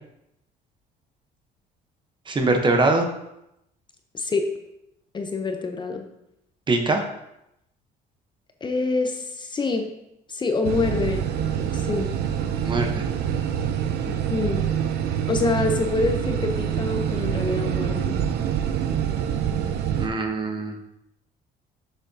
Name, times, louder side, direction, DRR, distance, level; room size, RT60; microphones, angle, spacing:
voice 1, 2.3-3.1 6.7-7.0 12.6-13.1 19.9-20.7, right 2 dB, 30° right, 4 dB, 1.0 m, -22 dB
voice 2, 4.1-4.5 5.1-6.0 8.6-9.9 10.3-11.2 11.5-12.1 14.1-14.7 15.3-18.2, left 3 dB, 25° left, 5 dB, 0.7 m, -26 dB
sound 1, 10.6-20.1, right 9 dB, 75° right, 0.7 m, -26 dB
7.0 x 6.8 x 2.8 m, 0.83 s
cardioid pair, 110°, 17 cm